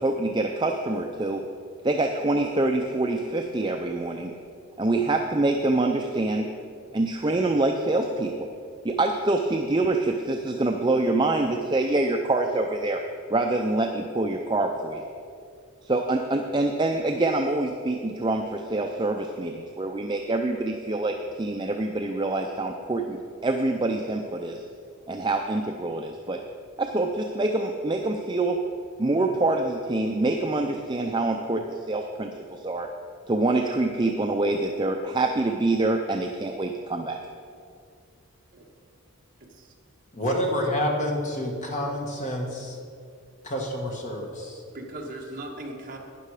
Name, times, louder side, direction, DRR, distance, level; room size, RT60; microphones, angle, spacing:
voice 1, 0.0-1.4 1.8-4.3 4.8-6.5 6.9-8.5 8.8-13.0 13.3-15.0 15.8-23.2 23.4-24.6 25.1-26.4 26.8-28.6 29.0-32.9 33.3-37.2, right 2 dB, 20° right, 3 dB, 0.4 m, -25 dB
voice 2, 40.1-42.8 43.4-44.6, equal, 35° left, 0 dB, 1.5 m, -28 dB
voice 3, 44.7-46.0, right 1 dB, 40° right, 0 dB, 1.5 m, -38 dB
12.0 x 10.0 x 4.9 m, 2.4 s
head